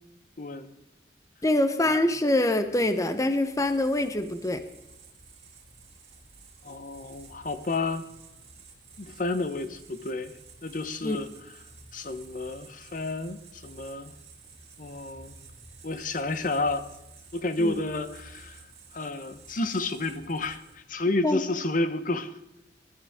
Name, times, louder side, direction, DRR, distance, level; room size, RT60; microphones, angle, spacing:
voice 1, 0.4-0.7 6.6-8.0 9.0-10.3 10.6-11.3 11.9-14.1 14.8-15.3 15.8-16.9 17.3-18.6 18.9-22.3, left 2 dB, 50° left, 11 dB, 0.9 m, -30 dB
voice 2, 1.4-4.6 11.0-11.2 17.6-17.7 21.2-21.4, left 1 dB, 20° left, 9 dB, 0.8 m, -24 dB
sound 1, 2.6-20.9, right 4 dB, 35° right, 3.1 m, -52 dB
21.5 x 11.5 x 3.6 m, 0.91 s
head